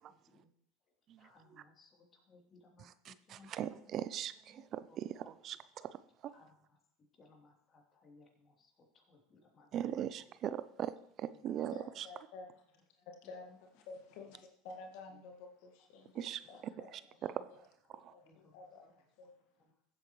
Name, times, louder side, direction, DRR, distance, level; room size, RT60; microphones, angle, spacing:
voice 1, 0.1-0.5 1.2-2.9 3.3-3.5 4.5-4.6 4.9-5.0 6.3-6.8 7.2-10.2 11.3-11.4 13.5-13.6 18.3-18.5 19.6-19.7, left 3 dB, 35° left, 0 dB, 3.4 m, -63 dB
voice 2, 2.8-5.9 9.7-10.9 11.2-11.7 16.2-16.4 17.2-17.3 18.0-18.1, right 10 dB, 50° right, 15 dB, 0.5 m, -40 dB
voice 3, 11.7-12.8 13.1-17.6 17.9-19.4, left 3 dB, 70° left, 3 dB, 1.7 m, -52 dB
15.5 x 8.3 x 3.2 m, 0.73 s
hypercardioid pair, 95°, 0 cm